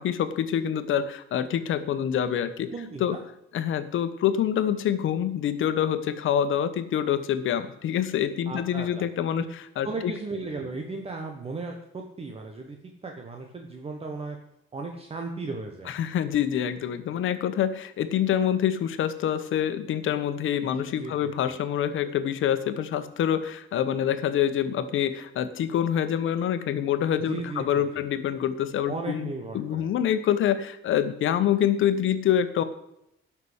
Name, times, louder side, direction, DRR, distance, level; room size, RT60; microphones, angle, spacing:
voice 1, 0.0-2.7 3.0-3.2 3.5-10.1 15.9-32.6, left 9 dB, 70° left, 11 dB, 1.2 m, -26 dB
voice 2, 2.7-3.2 8.5-9.0 9.8-12.8 13.0-14.4 14.7-15.9 20.6-21.5 27.3-28.0 28.9-29.9, right 3 dB, 30° right, 3 dB, 1.3 m, -36 dB
11.5 x 6.0 x 8.1 m, 0.80 s
cardioid pair, 135°, 21 cm